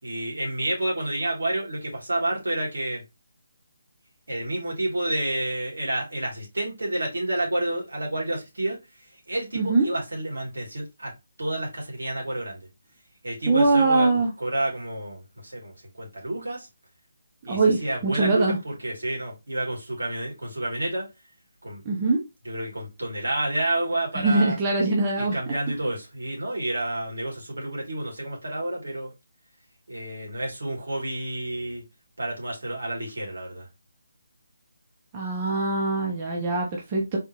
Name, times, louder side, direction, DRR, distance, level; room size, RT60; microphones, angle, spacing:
voice 1, 0.0-3.0 4.3-11.1 11.4-12.7 13.2-14.1 14.4-16.7 17.4-21.1 21.6-21.8 22.4-24.6 25.2-29.1 29.9-31.8 32.2-33.7, right 1 dB, 75° right, 2.7 m, -29 dB
voice 2, 9.5-9.9 13.5-14.3 17.4-18.6 21.8-22.2 24.1-25.4 35.1-37.2, right 3 dB, 25° right, 1.1 m, -22 dB
4.2 x 3.5 x 2.9 m
figure-of-eight pair, 150°, 0 cm